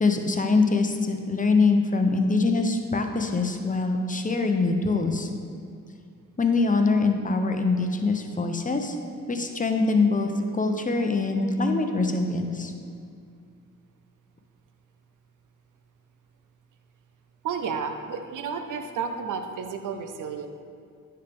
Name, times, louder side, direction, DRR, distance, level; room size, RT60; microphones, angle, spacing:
voice 1, 0.0-5.3 6.4-9.0 9.3-12.7, left 3 dB, 25° left, 5 dB, 0.8 m, -23 dB
voice 2, 17.4-20.5, right 6 dB, 80° right, 6 dB, 0.6 m, -31 dB
10.0 x 4.6 x 3.6 m, 2.3 s
cardioid pair, 60°, 31 cm